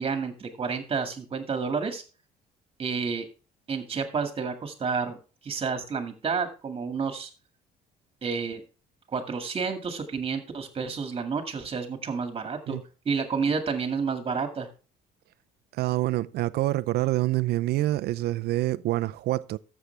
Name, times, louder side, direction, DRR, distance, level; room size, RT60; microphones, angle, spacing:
voice 1, 0.0-2.0 2.8-3.3 3.7-5.2 5.4-7.3 8.2-8.6 9.1-12.8 13.1-14.7, right 5 dB, 35° right, 2.1 m, -30 dB
voice 2, 15.7-19.6, right 16 dB, 70° right, 0.6 m, -26 dB
13.0 x 7.5 x 3.4 m
cardioid pair, 110°, 17 cm